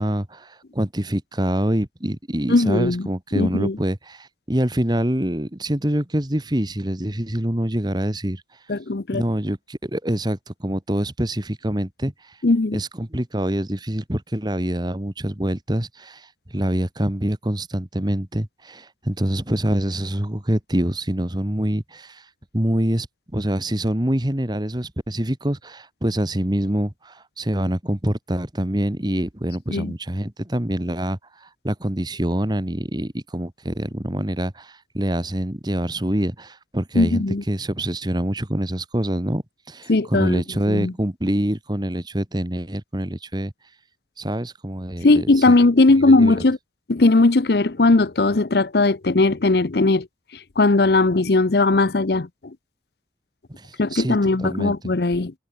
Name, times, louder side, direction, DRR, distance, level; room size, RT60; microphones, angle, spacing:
voice 1, 0.0-8.4 9.1-12.4 12.7-22.2 22.5-23.1 23.3-43.5 44.2-45.5 46.0-46.3 53.6-54.7, right 1 dB, 25° right, 1.7 m, -25 dB
voice 2, 2.5-3.1 3.3-3.8 8.7-9.2 12.4-12.8 29.7-29.9 36.9-37.4 39.9-40.4 40.7-40.9 45.0-46.6 46.9-50.1 50.3-52.5 53.8-55.3, left 2 dB, 60° left, 0.8 m, -18 dB
head